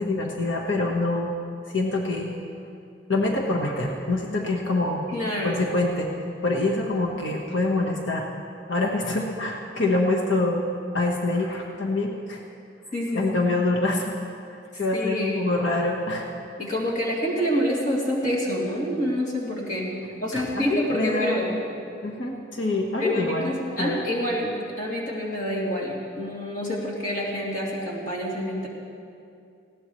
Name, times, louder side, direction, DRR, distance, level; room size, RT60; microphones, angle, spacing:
voice 1, 0.0-1.3 1.7-2.4 3.1-5.1 5.4-6.1 6.4-8.3 8.7-10.6 10.9-12.4 13.1-14.2 14.5-16.3 20.3-21.6 22.0-23.5 23.8-24.0, left 2 dB, 85° left, -1 dB, 1.4 m, -25 dB
voice 2, 5.1-5.7 12.9-13.5 14.7-15.5 16.6-21.6 23.0-28.7, equal, 45° left, -5 dB, 3.0 m, -27 dB
20.0 x 17.0 x 3.2 m, 2.5 s
head